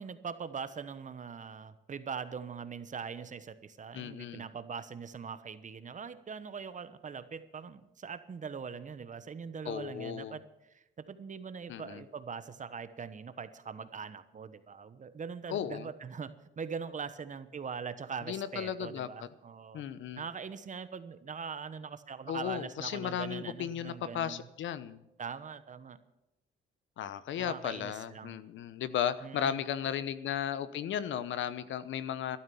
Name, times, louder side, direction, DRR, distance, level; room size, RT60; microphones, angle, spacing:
voice 1, 0.0-10.4 10.7-19.8 20.2-24.4 25.2-26.0 27.4-28.4 29.2-29.6, right 6 dB, 40° right, 13 dB, 1.1 m, -42 dB
voice 2, 3.9-4.4 9.6-10.4 11.7-12.0 15.5-15.9 18.3-19.3 19.7-20.2 22.3-25.0 27.0-32.4, left 9 dB, 75° left, 15 dB, 0.9 m, -35 dB
13.0 x 12.0 x 7.0 m, 0.91 s
cardioid pair, 90°, 20 cm